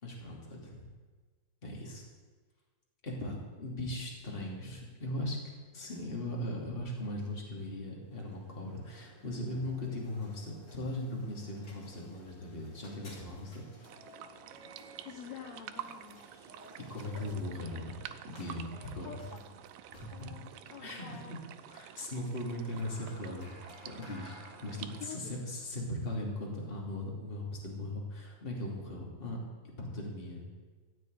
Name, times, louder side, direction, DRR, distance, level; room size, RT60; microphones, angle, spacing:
voice 1, 0.0-0.8 1.6-2.0 3.0-5.4 5.7-13.6 16.7-18.0 18.3-19.2 20.2-20.3 20.8-21.2 21.7-23.5 23.8-30.4, left 1 dB, 20° left, -2 dB, 2.3 m, -39 dB
sound 1, 8.0-27.1, left 1 dB, 35° left, 3.1 m, -56 dB
sound 2, 13.8-25.1, right 11 dB, 80° right, 2.2 m, -49 dB
voice 2, 15.1-16.5 19.0-19.6 20.1-21.4 25.0-25.3, left 8 dB, 65° left, 4 dB, 1.8 m, -48 dB
13.5 x 6.6 x 9.3 m, 1.4 s
omnidirectional pair, 3.9 m